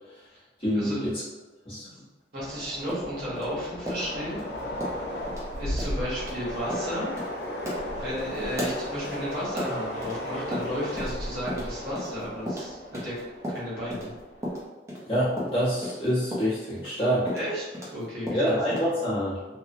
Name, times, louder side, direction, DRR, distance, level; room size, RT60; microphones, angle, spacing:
voice 1, 0.6-1.2 1.7-1.9 15.1-17.3 18.3-19.4, equal, 30° left, -10 dB, 0.8 m, -26 dB
voice 2, 2.3-4.4 5.6-7.1 8.0-13.1 13.5-14.1 17.3-17.6 17.9-18.6, equal, 70° right, -8 dB, 1.2 m, -33 dB
Train, 2.4-14.6, left 1 dB, 85° left, 0.5 m, -35 dB
sound 1, 2.9-4.4 4.8-5.0 5.3-5.4 5.8-5.9 6.2-6.4 6.7-6.9 7.2-7.3 7.7-10.2 10.5-11.2 11.5-14.1 14.4-18.0 18.3-18.9, equal, 15° right, 0.5 m, -34 dB
2.8 x 2.0 x 2.5 m, 1.2 s
head